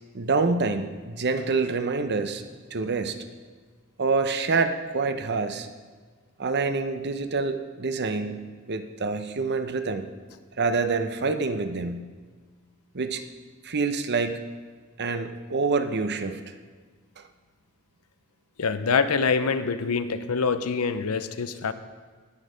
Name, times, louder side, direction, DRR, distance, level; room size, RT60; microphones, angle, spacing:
voice 1, 0.1-2.4 2.7-3.2 4.0-5.7 6.4-10.1 10.6-12.1 12.9-13.2 13.6-14.4 15.0-16.5 17.2-17.3, right 4 dB, 50° right, 8 dB, 0.8 m, -27 dB
voice 2, 18.6-21.7, left 5 dB, 90° left, 11 dB, 0.7 m, -25 dB
18.5 x 6.5 x 5.1 m, 1.5 s
head